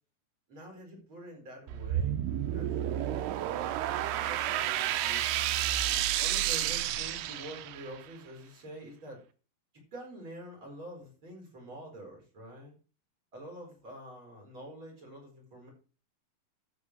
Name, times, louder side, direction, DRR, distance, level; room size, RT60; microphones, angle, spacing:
voice 1, 0.5-2.1 2.5-3.6 3.9-5.3 5.8-9.2 9.9-12.7 13.3-15.7, right 1 dB, 30° right, -1 dB, 5.2 m, -47 dB
sound 1, 1.7-8.0, right 12 dB, 90° right, 2.8 m, -31 dB
13.5 x 5.6 x 6.2 m, 0.37 s
omnidirectional pair, 4.5 m